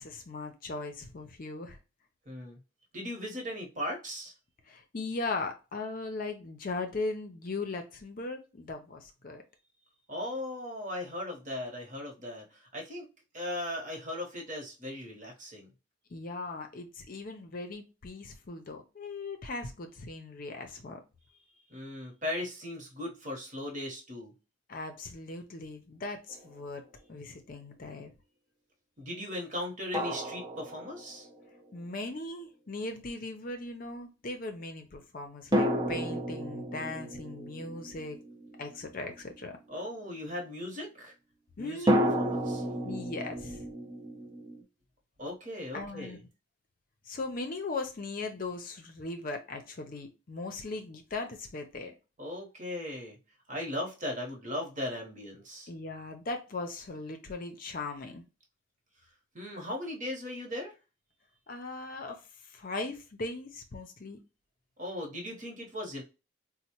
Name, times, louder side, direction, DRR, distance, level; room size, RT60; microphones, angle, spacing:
voice 1, 0.0-1.8 4.7-9.4 16.1-21.0 24.7-26.8 27.1-28.1 31.7-38.2 38.6-39.6 41.6-42.0 42.8-43.7 45.7-46.2 47.1-51.9 55.7-58.2 61.5-64.2, left 3 dB, 45° left, 0.5 m, -38 dB
voice 2, 2.3-2.6 2.9-4.3 10.1-13.1 13.3-15.7 21.7-24.3 29.0-31.3 39.7-41.1 41.6-42.6 45.2-46.2 52.2-53.2 53.5-55.7 59.3-60.7 64.8-66.0, left 1 dB, 40° right, 1.0 m, -38 dB
sound 1, 26.3-26.5 29.9-31.4 35.5-39.2 41.9-44.6, equal, 20° right, 0.5 m, -32 dB
4.1 x 2.1 x 2.9 m
head